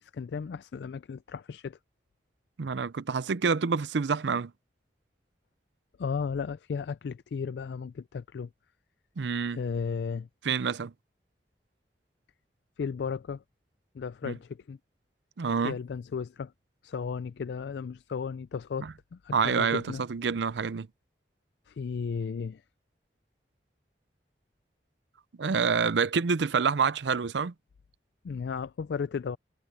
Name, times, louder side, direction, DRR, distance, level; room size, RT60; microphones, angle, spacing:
voice 1, 0.2-1.8 6.0-8.5 9.5-10.3 12.8-13.4 13.9-14.8 15.6-16.5 16.8-20.0 21.7-22.6 28.2-29.4, left 6 dB, 75° left, 0.3 m, -34 dB
voice 2, 2.6-4.5 9.2-9.6 10.4-10.9 14.2-14.3 15.4-15.7 18.8-18.9 19.3-20.9 25.4-27.5, right 5 dB, 85° right, 0.5 m, -27 dB
head